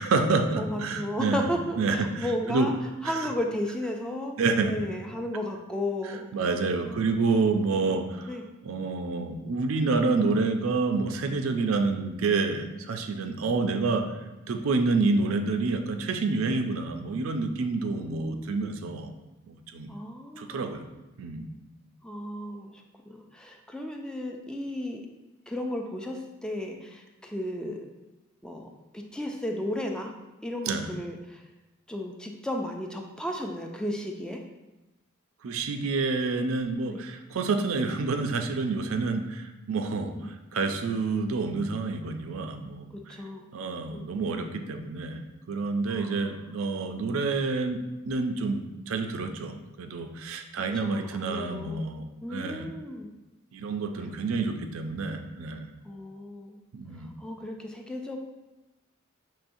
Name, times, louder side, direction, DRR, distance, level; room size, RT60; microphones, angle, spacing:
voice 1, 0.0-1.5 1.8-2.7 3.0-3.2 4.4-4.7 6.3-8.3 8.6-14.1 14.5-19.1 19.5-19.9 20.4-20.9 21.2-21.5 30.7-30.9 35.4-43.1 43.5-47.8 48.1-52.7 53.5-55.7 56.7-57.1, right 3 dB, 80° right, 6 dB, 0.4 m, -28 dB
voice 2, 0.6-2.7 3.0-6.3 6.8-8.0 8.2-8.4 17.9-18.7 19.9-20.7 22.0-25.0 25.5-27.8 28.4-28.7 28.9-30.1 30.4-31.4 31.9-34.4 36.9-37.0 40.1-40.3 43.1-43.5 43.9-44.0 45.9-46.6 50.7-51.9 52.2-53.1 55.8-56.6 57.2-58.2, left 1 dB, 5° left, 2 dB, 0.3 m, -34 dB
5.6 x 3.0 x 2.6 m, 1.0 s
head